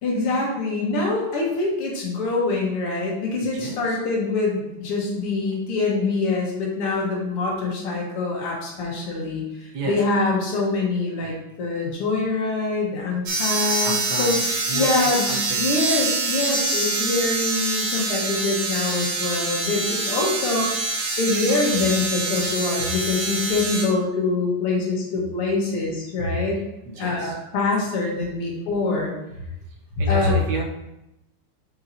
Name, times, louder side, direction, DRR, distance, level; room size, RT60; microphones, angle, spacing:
voice 1, 0.0-9.4 9.8-20.7 21.2-26.6 27.0-29.1 30.0-30.4, left 3 dB, 80° left, -2 dB, 2.3 m, -24 dB
voice 2, 3.5-4.0 9.7-10.0 11.2-11.3 13.8-14.4 14.7-15.8 27.0-27.3 30.0-30.6, right 3 dB, 55° right, 0 dB, 1.4 m, -32 dB
sound 1, 13.3-23.8, right 3 dB, 85° right, 2.2 m, -25 dB
7.0 x 5.6 x 2.7 m, 0.88 s
omnidirectional pair, 2.4 m